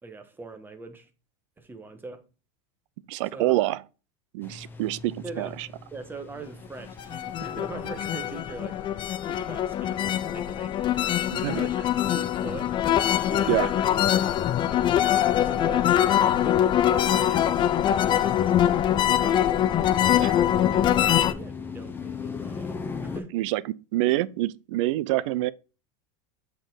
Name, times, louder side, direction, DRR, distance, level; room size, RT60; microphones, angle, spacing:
voice 1, 0.0-1.1 1.6-2.3 3.3-3.5 5.2-5.6 5.9-8.8 9.2-12.8 13.2-17.5 17.9-19.5 19.9-23.4 25.2-25.3, right 3 dB, 10° right, 1.3 m, -42 dB
voice 2, 3.1-3.8 4.3-5.7 11.3-11.6 13.5-13.7 23.3-23.6 23.9-25.5, right 17 dB, 70° right, 0.5 m, -26 dB
sound 1, 4.4-23.2, left 5 dB, 15° left, 0.9 m, -42 dB
sound 2, 6.9-21.3, left 11 dB, 30° left, 0.5 m, -23 dB
7.8 x 4.5 x 3.9 m
supercardioid pair, 135°, 16 cm